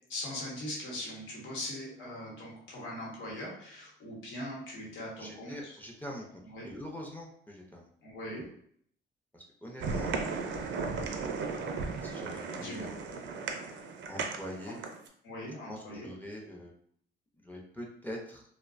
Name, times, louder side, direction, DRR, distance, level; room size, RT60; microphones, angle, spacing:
voice 1, 0.1-5.8 6.4-6.7 8.0-8.5 12.5-13.0 14.7-14.8 15.2-16.1, left 1 dB, 80° left, -4 dB, 1.0 m, -41 dB
voice 2, 5.2-7.9 9.3-10.2 11.0-11.5 12.0-13.4 14.1-14.8 15.7-16.7 17.4-18.4, left 1 dB, 10° left, -2 dB, 0.5 m, -44 dB
sound 1, 9.8-15.1, right 4 dB, 65° right, 0.4 m, -36 dB
2.5 x 2.1 x 2.4 m, 0.65 s
cardioid pair, 90°, 20 cm